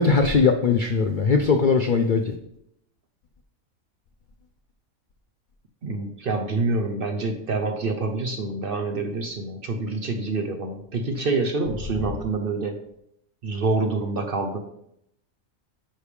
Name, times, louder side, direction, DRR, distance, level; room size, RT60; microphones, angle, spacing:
voice 1, 0.0-2.2, left 4 dB, 60° left, 5 dB, 0.5 m, -20 dB
voice 2, 5.8-12.8 13.4-14.6, right 3 dB, 55° right, 5 dB, 0.7 m, -27 dB
10.0 x 3.4 x 4.9 m, 0.76 s
omnidirectional pair, 1.5 m